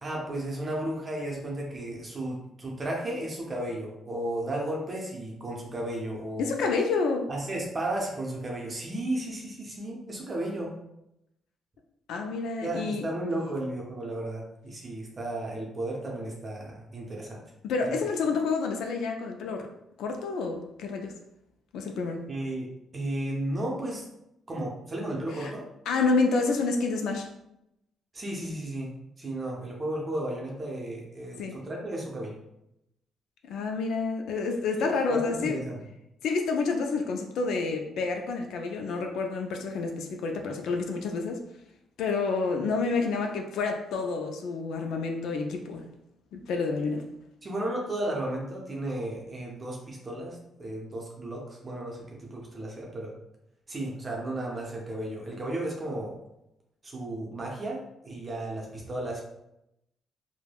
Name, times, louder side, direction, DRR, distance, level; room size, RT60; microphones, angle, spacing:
voice 1, 0.0-6.5 7.3-10.8 12.6-17.4 17.8-17.9 22.3-24.1 24.5-25.7 28.1-32.4 34.8-35.8 47.4-53.1 53.7-56.2 56.8-59.2, right 1 dB, 35° right, -2 dB, 0.6 m, -34 dB
voice 2, 6.4-7.3 12.1-13.0 17.6-19.7 20.0-21.1 21.7-22.3 25.3-25.5 25.9-27.3 31.4-31.6 33.4-35.6 36.2-41.4 42.0-45.9 46.3-47.0, left 4 dB, 80° left, 3 dB, 0.3 m, -29 dB
3.2 x 2.1 x 2.2 m, 0.84 s
cardioid pair, 90°, 0 cm